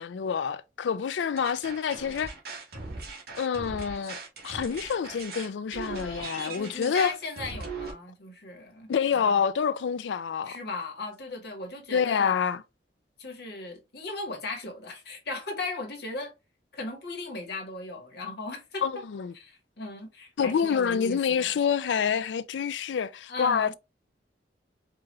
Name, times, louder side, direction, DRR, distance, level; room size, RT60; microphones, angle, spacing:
voice 1, 0.0-2.3 3.4-4.2 4.4-7.1 8.9-10.6 11.9-12.6 18.8-19.3 20.4-23.7, left 7 dB, 80° left, 0.4 m, -27 dB
sound 1, 1.4-7.9, right 3 dB, 60° right, 1.3 m, -40 dB
voice 2, 6.3-9.4 10.4-12.4 13.2-16.3 16.7-18.9 19.3-21.6 23.3-23.8, left 2 dB, 65° left, 1.3 m, -37 dB
4.7 x 2.4 x 2.9 m
head